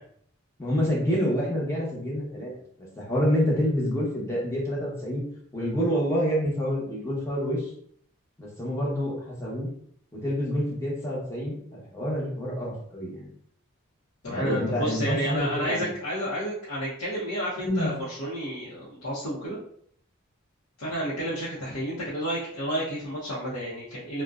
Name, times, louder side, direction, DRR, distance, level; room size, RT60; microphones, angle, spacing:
voice 1, 0.6-2.5 3.0-5.2 5.5-7.7 8.4-9.7 10.1-13.3 14.2-15.9 17.6-17.9, equal, 15° left, -5 dB, 0.7 m, -27 dB
voice 2, 14.2-19.6 20.8-24.2, equal, 85° left, -8 dB, 0.7 m, -31 dB
2.5 x 2.1 x 2.3 m, 0.64 s
head